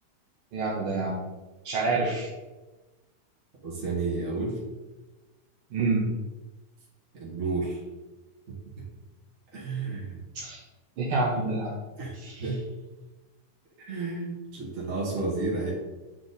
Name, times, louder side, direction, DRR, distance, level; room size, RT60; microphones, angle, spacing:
voice 1, 0.5-1.2 1.7-2.3 5.7-6.1 10.4-10.6 11.0-11.7 12.1-12.5, right 3 dB, 75° right, -4 dB, 1.7 m, -27 dB
voice 2, 3.6-4.6 7.1-7.8 8.5-8.6 9.5-10.2 12.0-12.6 13.8-15.7, right 3 dB, 40° right, -5 dB, 1.7 m, -31 dB
8.0 x 3.8 x 4.0 m, 1.2 s
omnidirectional pair, 2.3 m